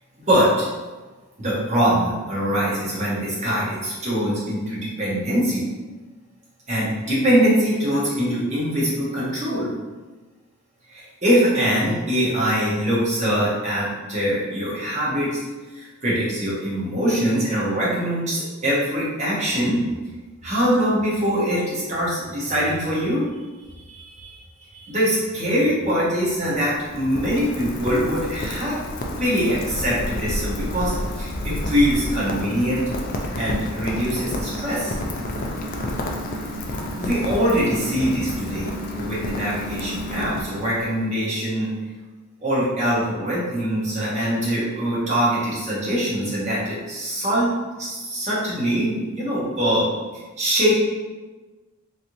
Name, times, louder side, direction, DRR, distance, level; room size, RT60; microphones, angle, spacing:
voice 1, 0.2-0.7 1.4-5.6 6.7-9.7 10.9-15.4 15.7-19.8 20.4-23.2 23.8-24.4 24.7-28.8 29.2-30.9 31.2-32.8 33.4-34.9 37.0-41.7 42.4-47.5 47.8-49.9 50.4-50.7, equal, 30° right, -7 dB, 1.0 m, -23 dB
Rain, 26.2-41.0, left 1 dB, 40° left, 0.4 m, -30 dB
3.3 x 2.9 x 2.6 m, 1.3 s
head